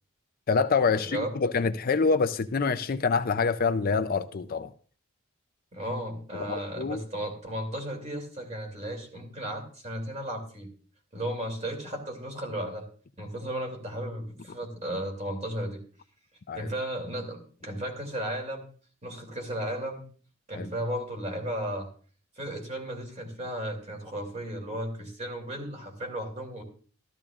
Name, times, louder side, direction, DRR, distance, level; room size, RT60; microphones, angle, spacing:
voice 1, 0.5-4.7 6.3-7.0 16.5-16.7 20.5-20.7, left 4 dB, 45° left, 0.5 m, -26 dB
voice 2, 1.0-1.3 5.7-10.7 11.1-12.9 13.2-15.8 16.5-18.6 19.0-20.0 20.5-21.9 22.4-26.6, right 1 dB, 35° right, 3.0 m, -34 dB
14.0 x 13.5 x 2.5 m
head